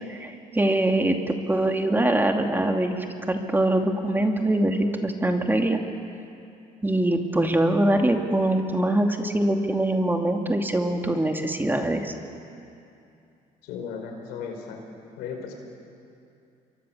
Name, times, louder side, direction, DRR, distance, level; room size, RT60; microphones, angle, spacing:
voice 1, 0.1-5.8 6.8-12.1, right 1 dB, 15° right, 3 dB, 2.5 m, -23 dB
voice 2, 13.6-14.8 15.2-15.5, left 6 dB, 85° left, 3 dB, 4.9 m, -35 dB
28.0 x 23.5 x 7.2 m, 2.6 s
supercardioid pair, 80°, 16 cm